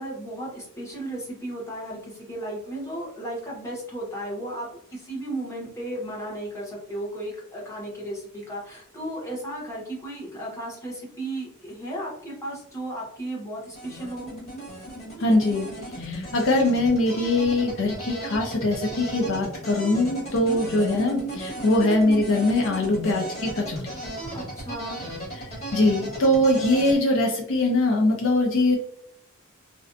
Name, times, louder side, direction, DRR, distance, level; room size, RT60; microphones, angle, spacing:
voice 1, 0.0-14.3 20.4-20.6 24.3-25.0, right 1 dB, 15° left, -5 dB, 0.9 m, -35 dB
sound 1, 13.7-27.0, right 1 dB, 30° left, 1.3 m, -35 dB
voice 2, 15.2-15.7 16.0-23.8 25.7-28.8, left 1 dB, 60° left, 1 dB, 0.4 m, -22 dB
2.5 x 2.2 x 2.5 m, 0.67 s
head